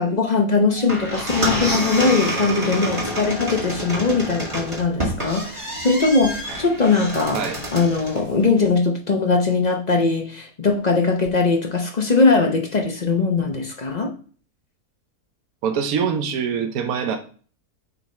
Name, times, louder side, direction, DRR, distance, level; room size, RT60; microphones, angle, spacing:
voice 1, 0.0-7.4 7.7-14.1, left 4 dB, 40° left, 0.6 m, -20 dB
sound 1, 0.7-8.3, equal, 20° right, 1.8 m, -27 dB
voice 2, 15.6-17.2, right 7 dB, 70° right, 1.2 m, -24 dB
6.8 x 4.0 x 4.2 m
omnidirectional pair, 1.6 m